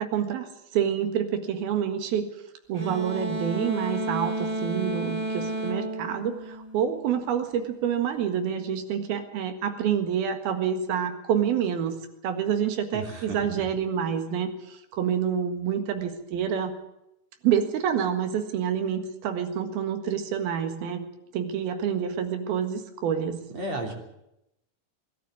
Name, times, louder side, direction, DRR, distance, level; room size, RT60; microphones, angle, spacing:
voice 1, 0.0-2.3 2.7-11.9 12.2-16.7 17.4-21.1 21.3-23.4, right 8 dB, 80° right, 7 dB, 3.6 m, -27 dB
sound 1, 2.7-7.2, right 1 dB, 60° right, 0.3 m, -32 dB
voice 2, 12.9-13.6 23.5-23.9, right 2 dB, 45° right, 2 dB, 4.2 m, -34 dB
22.0 x 12.0 x 9.6 m, 0.84 s
omnidirectional pair, 4.3 m